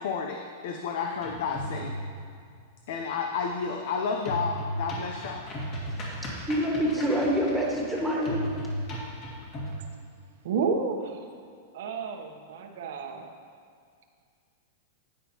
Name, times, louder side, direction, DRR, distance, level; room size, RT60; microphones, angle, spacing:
voice 1, 0.0-1.9 2.9-5.4, left 5 dB, 65° left, 3 dB, 0.7 m, -31 dB
sound 1, 1.1-2.3 4.3-9.8, equal, 40° left, 2.3 m, -35 dB
voice 2, 6.5-8.5, equal, ahead, -3 dB, 1.7 m, -26 dB
voice 3, 10.4-11.3 11.7-13.3, right 5 dB, 70° right, 3 dB, 1.0 m, -31 dB
16.5 x 5.6 x 3.0 m, 2.2 s
hypercardioid pair, 135°, 0 cm